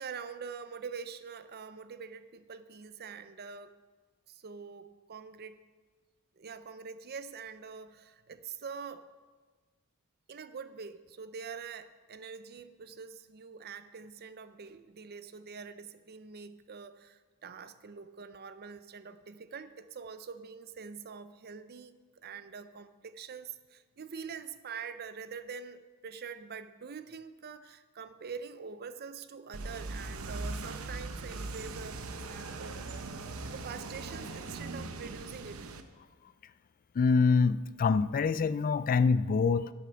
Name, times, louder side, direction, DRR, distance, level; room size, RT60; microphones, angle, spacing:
voice 1, 0.0-3.7 4.3-5.6 6.4-9.1 10.3-32.8 33.5-35.7, right 6 dB, 45° right, 12 dB, 0.6 m, -45 dB
sound 1, 29.5-35.8, right 3 dB, 70° right, 0.8 m, -40 dB
voice 2, 37.0-39.7, left 5 dB, 40° left, 16 dB, 0.3 m, -25 dB
12.5 x 8.0 x 5.7 m, 1.4 s
head